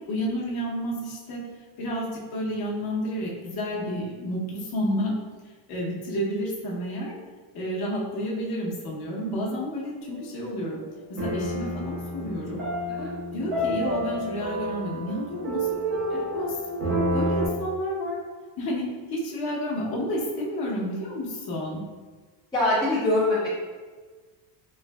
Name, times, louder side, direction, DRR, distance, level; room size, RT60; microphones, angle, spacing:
voice 1, 0.1-1.4 1.8-5.1 5.7-7.1 7.5-10.8 11.1-12.6 13.3-18.2 18.6-21.8, equal, 50° left, -5 dB, 0.8 m, -30 dB
sound 1, 10.0-10.4 11.2-17.5, equal, 90° right, 1.3 m, -29 dB
voice 2, 22.5-23.5, left 2 dB, 10° left, -11 dB, 0.4 m, -23 dB
3.3 x 2.5 x 2.2 m, 1.4 s
cardioid pair, 130°, 50 cm